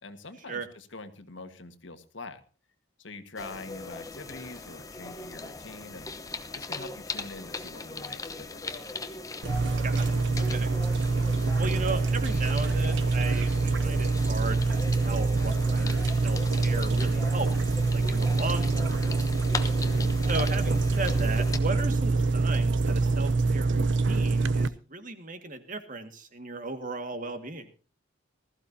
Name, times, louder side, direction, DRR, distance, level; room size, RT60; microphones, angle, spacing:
voice 1, 0.0-2.4 3.0-6.1 6.5-8.8 19.8-20.2, left 3 dB, 75° left, 9 dB, 1.6 m, -44 dB
sound 1, 3.4-21.6, left 3 dB, 15° left, 1.0 m, -39 dB
sound 2, 9.4-24.7, right 3 dB, 65° right, 0.7 m, -25 dB
voice 2, 9.8-10.7 11.6-19.1 20.3-27.7, right 3 dB, 45° right, 8 dB, 1.9 m, -36 dB
20.0 x 14.5 x 2.8 m, 0.35 s
head